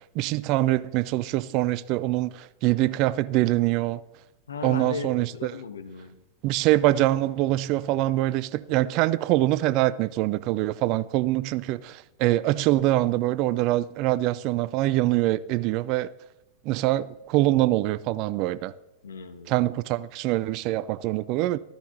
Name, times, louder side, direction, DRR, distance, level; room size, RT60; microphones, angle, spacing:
voice 1, 0.0-4.0 4.6-5.5 6.4-16.1 16.6-18.7 19.5-21.6, right 16 dB, 40° right, 0.4 m, -24 dB
voice 2, 4.5-6.2 19.0-19.5, left 5 dB, 70° left, 1.0 m, -36 dB
13.5 x 10.5 x 4.0 m
figure-of-eight pair, 90°, 0 cm